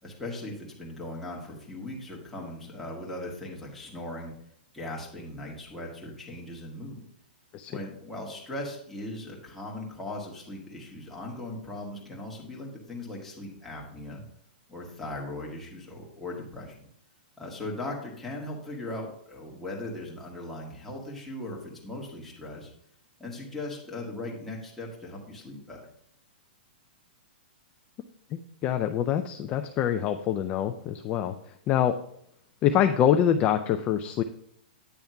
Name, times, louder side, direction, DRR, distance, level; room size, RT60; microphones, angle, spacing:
voice 1, 0.0-4.3 4.7-7.0 7.7-14.2 14.7-16.9 17.4-22.7 23.2-25.8, left 1 dB, 5° left, -4 dB, 1.9 m, -38 dB
voice 2, 28.3-31.4 31.7-32.0 32.6-34.2, left 10 dB, 25° left, 7 dB, 0.4 m, -25 dB
9.3 x 3.4 x 5.6 m, 0.70 s
hypercardioid pair, 150°, 5 cm